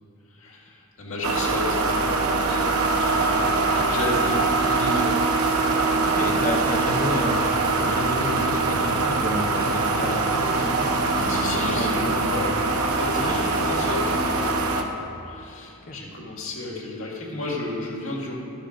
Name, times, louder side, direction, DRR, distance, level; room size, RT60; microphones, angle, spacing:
voice 1, 0.3-2.7 3.0-5.4 6.2-6.4 11.3-12.6 12.8-18.3, left 2 dB, 70° left, -3 dB, 2.1 m, -33 dB
sound 1, 1.2-14.8, right 3 dB, 80° right, 0.9 m, -23 dB
voice 2, 6.1-7.4 7.8-10.9 11.1-12.6 13.2-13.3 15.9-16.0, left 1 dB, 35° left, 2 dB, 0.9 m, -31 dB
11.5 x 7.3 x 5.1 m, 2.8 s
head